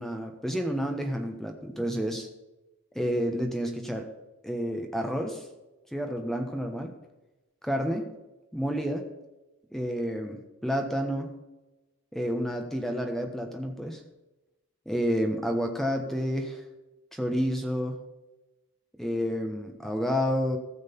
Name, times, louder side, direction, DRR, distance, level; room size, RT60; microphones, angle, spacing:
voice 1, 0.0-2.3 2.9-4.1 4.4-5.5 5.9-6.9 7.6-8.0 8.5-9.0 9.7-11.3 12.1-14.0 14.9-16.6 17.1-18.0 19.0-20.6, equal, ahead, 4 dB, 1.1 m, -30 dB
15.0 x 6.5 x 5.3 m, 1.0 s
head